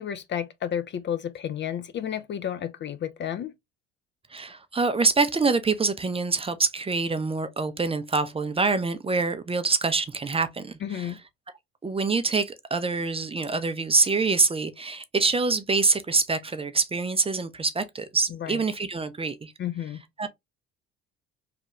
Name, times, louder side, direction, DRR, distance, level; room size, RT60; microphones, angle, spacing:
voice 1, 0.0-3.5 10.8-11.2 18.4-18.6 19.6-20.0, left 9 dB, 35° left, 0.4 m, -31 dB
voice 2, 4.3-11.2 11.8-19.5 20.2-20.3, right 4 dB, 20° right, 0.5 m, -25 dB
3.2 x 2.2 x 2.9 m
hypercardioid pair, 60°, 32 cm